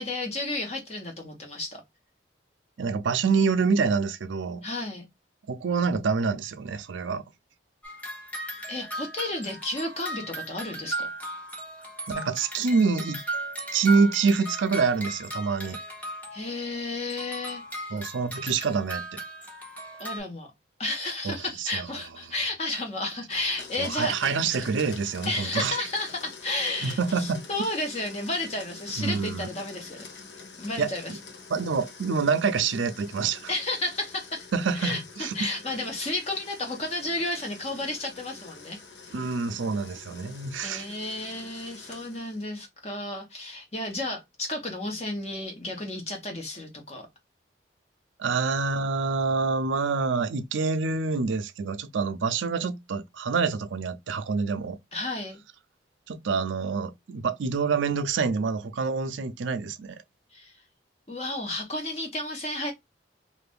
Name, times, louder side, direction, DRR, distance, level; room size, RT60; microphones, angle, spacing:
voice 1, 0.0-1.8 4.6-5.1 8.7-11.1 16.3-17.6 20.0-20.5 20.8-24.4 25.2-30.1 30.6-31.1 33.5-34.5 34.7-38.8 39.1-39.2 40.6-47.1 48.2-48.4 54.9-55.4 60.3-60.5 61.1-62.7, left 2 dB, 35° left, 0.9 m, -32 dB
voice 2, 2.8-4.7 5.5-7.2 12.1-13.2 13.7-15.8 17.9-19.2 21.2-21.9 23.8-25.8 26.8-27.4 29.0-29.5 30.8-31.2 31.5-33.5 34.5-35.4 39.1-40.9 48.2-54.8 56.1-60.0, right 5 dB, 85° right, 0.5 m, -26 dB
sound 1, 7.8-16.7 17.1-20.2, right 2 dB, 10° left, 0.7 m, -37 dB
Domestic sounds home sounds, 23.3-42.5, left 4 dB, 70° left, 0.9 m, -46 dB
2.6 x 2.4 x 3.4 m
head